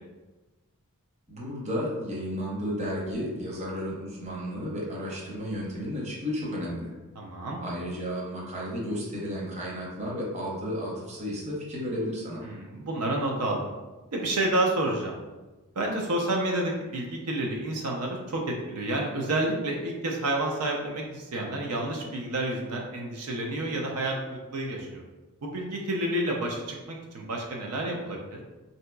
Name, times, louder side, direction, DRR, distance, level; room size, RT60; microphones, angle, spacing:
voice 1, 1.3-6.9 7.6-12.4, equal, 30° right, -4 dB, 0.8 m, -33 dB
voice 2, 7.2-7.6 12.4-13.7 14.1-15.1 15.8-25.0 25.4-28.4, right 1 dB, 75° right, 0 dB, 0.5 m, -29 dB
3.7 x 2.8 x 2.2 m, 1.2 s
head